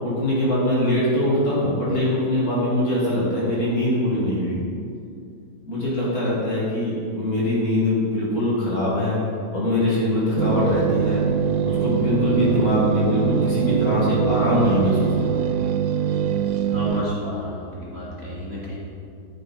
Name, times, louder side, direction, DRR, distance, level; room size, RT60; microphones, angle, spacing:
voice 1, 0.0-4.6 5.7-9.2 9.5-11.2 11.6-15.4, left 1 dB, 50° left, -7 dB, 2.5 m, -22 dB
sound 1, 10.4-17.0, right 8 dB, 90° right, 0.7 m, -23 dB
voice 2, 16.7-18.8, left 2 dB, 30° right, -7 dB, 2.2 m, -31 dB
11.5 x 6.5 x 4.2 m, 2.4 s
omnidirectional pair, 2.2 m